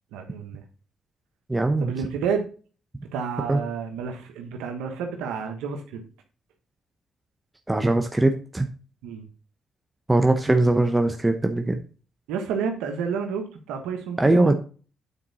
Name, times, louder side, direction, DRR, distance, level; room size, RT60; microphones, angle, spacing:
voice 1, 0.1-0.6 1.8-2.5 3.1-6.0 9.0-9.3 12.3-14.5, right 6 dB, 90° right, 5 dB, 1.3 m, -30 dB
voice 2, 1.5-1.9 3.5-3.6 7.7-8.7 10.1-11.8 14.2-14.5, right 2 dB, 15° right, 5 dB, 0.8 m, -21 dB
8.9 x 4.5 x 4.1 m, 0.37 s
supercardioid pair, 70°, 0 cm